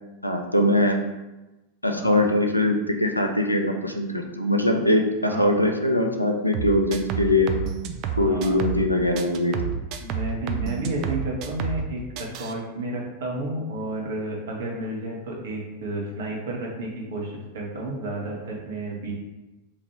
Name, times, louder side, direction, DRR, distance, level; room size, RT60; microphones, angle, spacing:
voice 1, 0.2-1.0 1.8-7.5 8.2-9.7, left 1 dB, 85° left, 3 dB, 0.4 m, -22 dB
voice 2, 2.0-2.3 5.2-5.6 8.1-8.6 10.0-19.1, right 1 dB, 60° right, -2 dB, 0.9 m, -31 dB
sound 1, 6.5-8.9 9.2-11.9 12.2-12.5, right 8 dB, 40° right, 0.3 m, -29 dB
2.9 x 2.5 x 4.2 m, 1.1 s
figure-of-eight pair, 90°, 0 cm